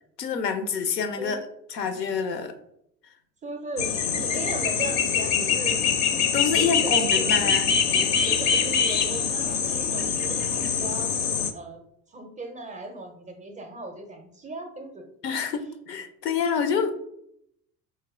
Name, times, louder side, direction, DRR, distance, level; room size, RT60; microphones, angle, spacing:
voice 1, 0.2-1.4 1.7-2.5 6.3-7.7 15.2-16.9, left 6 dB, 80° left, 9 dB, 0.6 m, -27 dB
voice 2, 3.4-3.9 4.2-5.8 6.5-7.6 7.9-11.1 11.5-11.8 12.1-15.1, right 2 dB, 15° right, 4 dB, 0.5 m, -37 dB
sound 1, 3.8-11.5, left 6 dB, 40° left, 0.5 m, -24 dB
3.3 x 2.9 x 3.4 m, 0.74 s
figure-of-eight pair, 65°, 49 cm